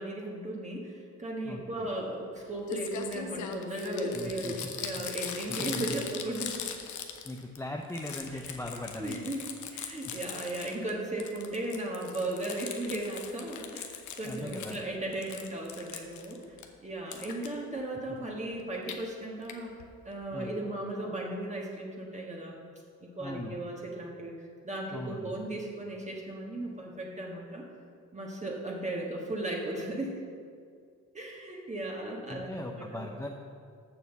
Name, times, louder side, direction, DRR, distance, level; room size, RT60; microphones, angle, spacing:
voice 1, 0.0-6.5 8.6-9.4 9.7-16.4 16.8-19.7 20.0-22.5 23.0-27.6 28.1-30.2 31.1-33.1, right 1 dB, 25° right, -2 dB, 1.4 m, -36 dB
voice 2, 1.4-1.9 4.1-4.7 5.5-6.0 7.2-9.3 10.0-10.1 14.2-14.8 20.3-20.5 23.2-23.6 24.9-25.4 32.3-33.3, left 1 dB, 10° left, 1 dB, 0.6 m, -39 dB
Crumpling crinkling, 2.4-2.5 2.7-7.6 7.8-10.9 11.2-14.8 15.1-16.7 17.1-17.5 18.6-19.0 19.5-19.6 19.8-19.9 20.1-20.2, left 7 dB, 75° left, 1.0 m, -40 dB
7.1 x 6.2 x 7.2 m, 2.3 s
cardioid pair, 90°, 30 cm